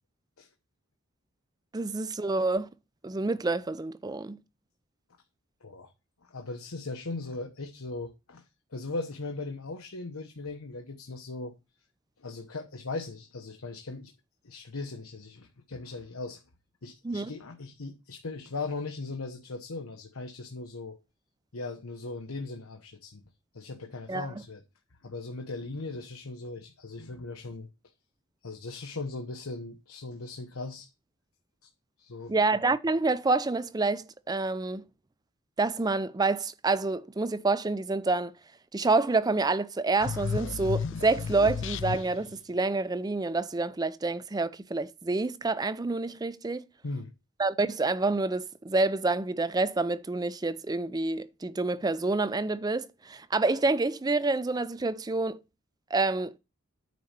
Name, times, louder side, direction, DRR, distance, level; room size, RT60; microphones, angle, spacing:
voice 1, 1.7-2.7 3.0-4.4 17.0-17.3 24.1-24.3 32.3-34.8 35.6-38.3 38.7-46.6 47.4-55.4 55.9-56.3, right 3 dB, 20° right, 0.4 m, -28 dB
voice 2, 5.6-5.9 6.2-8.4 8.7-11.5 12.2-14.1 14.4-16.4 16.8-21.0 21.5-23.2 23.5-24.6 25.0-27.7 28.4-30.9 32.0-32.3 46.8-47.1, left 3 dB, 85° left, 1.0 m, -38 dB
sound 1, 40.0-42.3, left 6 dB, 60° left, 0.5 m, -33 dB
9.4 x 4.1 x 6.7 m
head